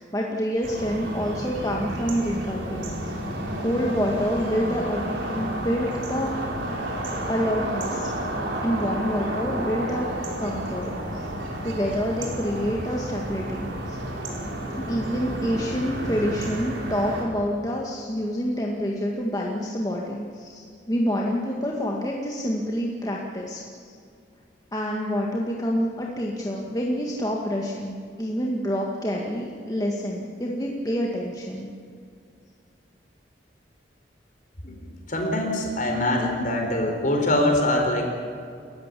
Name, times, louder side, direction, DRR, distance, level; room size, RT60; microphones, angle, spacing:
voice 1, 0.0-3.1 3.6-6.3 7.3-8.1 8.6-10.1 10.4-11.3 11.6-14.0 14.8-23.9 24.7-31.7, equal, 20° left, -2 dB, 2.0 m, -27 dB
sound 1, 0.6-17.2, right 1 dB, 90° right, 5.1 m, -31 dB
voice 2, 35.1-38.1, left 1 dB, 45° left, 2 dB, 4.7 m, -23 dB
29.5 x 14.5 x 8.5 m, 2.3 s
head